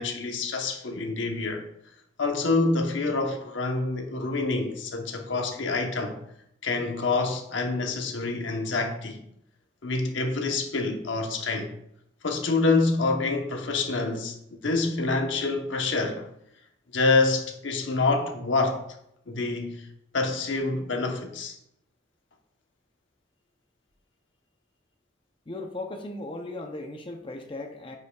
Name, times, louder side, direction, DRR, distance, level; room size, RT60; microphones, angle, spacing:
voice 1, 0.0-1.7 2.2-6.2 6.6-9.2 9.8-11.7 12.2-14.3 14.6-16.3 16.9-18.8 19.3-19.9 20.1-21.6, left 3 dB, 80° left, 0.9 m, -26 dB
voice 2, 25.5-28.0, left 2 dB, 25° left, 0.5 m, -37 dB
9.8 x 5.3 x 2.3 m
head